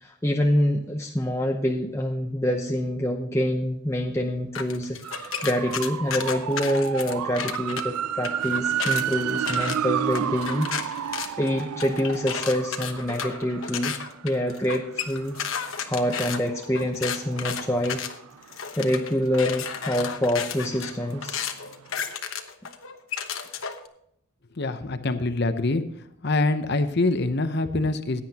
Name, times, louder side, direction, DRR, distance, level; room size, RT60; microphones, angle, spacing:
voice 1, 0.0-13.9 14.2-15.4 15.8-18.0 18.8-21.5, left 1 dB, 10° left, 1 dB, 0.7 m, -26 dB
sound 1, 4.5-7.8 8.2-23.9, left 7 dB, 65° left, 1.1 m, -33 dB
sound 2, 5.0-18.8 19.2-21.7 22.0-22.1, right 9 dB, 90° right, 0.4 m, -33 dB
voice 2, 24.6-25.8 26.2-28.2, left 2 dB, 50° left, 10 dB, 0.8 m, -24 dB
16.5 x 9.8 x 2.9 m, 0.72 s
head